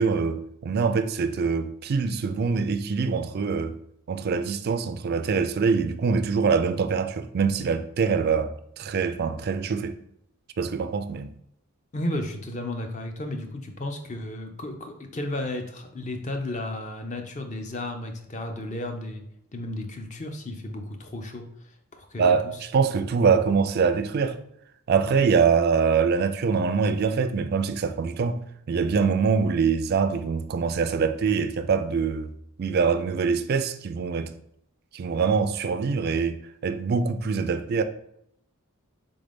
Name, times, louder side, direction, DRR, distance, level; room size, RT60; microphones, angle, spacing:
voice 1, 0.0-3.7 4.1-10.0 10.6-11.3 22.2-24.4 24.9-28.4 28.7-32.3 32.6-34.3 34.9-36.4 36.6-37.8, right 5 dB, 45° right, 0.3 m, -24 dB
voice 2, 11.9-19.2 19.5-22.5, left 1 dB, 35° left, 0.5 m, -33 dB
3.8 x 3.7 x 3.5 m
head